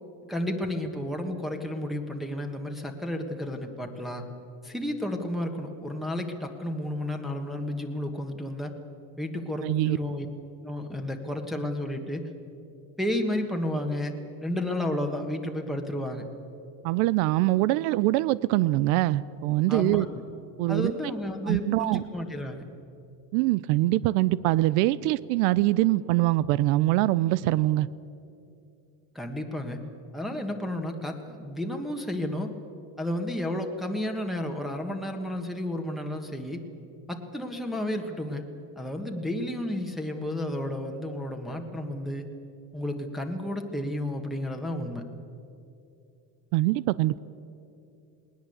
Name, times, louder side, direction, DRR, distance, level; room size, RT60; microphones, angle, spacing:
voice 1, 0.2-4.2 4.6-8.7 9.2-10.3 10.6-12.3 13.0-14.1 14.4-16.3 19.7-20.2 20.7-22.7 29.1-29.8 30.1-32.5 33.0-36.6 37.1-38.4 38.7-42.3 42.7-45.1, left 1 dB, ahead, 2 dB, 1.5 m, -32 dB
voice 2, 9.6-10.0 16.8-20.1 20.6-20.9 21.5-22.0 23.3-27.9 46.5-47.2, right 17 dB, 90° right, 19 dB, 0.6 m, -23 dB
20.0 x 19.0 x 8.0 m, 2.7 s
cardioid pair, 125°, 39 cm